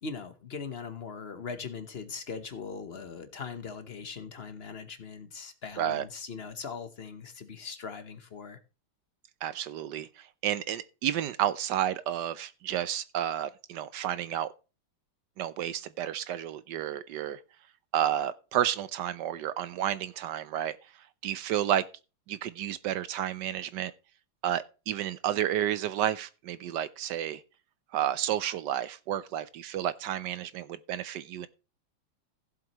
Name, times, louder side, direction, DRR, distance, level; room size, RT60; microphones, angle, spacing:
voice 1, 0.0-8.6, left 5 dB, 50° left, 0.7 m, -40 dB
voice 2, 9.4-14.5 15.4-17.4 17.9-20.8 21.2-21.8 22.3-23.9 24.4-27.4 27.9-31.5, right 11 dB, 70° right, 1.0 m, -31 dB
15.5 x 7.5 x 3.0 m
omnidirectional pair, 2.4 m